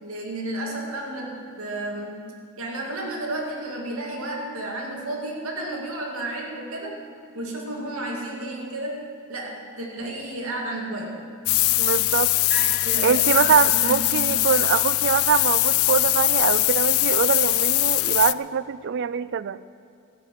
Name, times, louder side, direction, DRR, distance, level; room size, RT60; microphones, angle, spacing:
voice 1, 0.0-7.0 7.3-11.2 12.5-14.4, right 1 dB, 75° right, 0 dB, 2.4 m, -32 dB
sound 1, 11.5-18.3, left 20 dB, 70° left, 0.4 m, -21 dB
voice 2, 11.8-12.3 13.0-19.6, right 7 dB, 55° right, 17 dB, 0.4 m, -23 dB
14.0 x 10.5 x 7.7 m, 2.4 s
head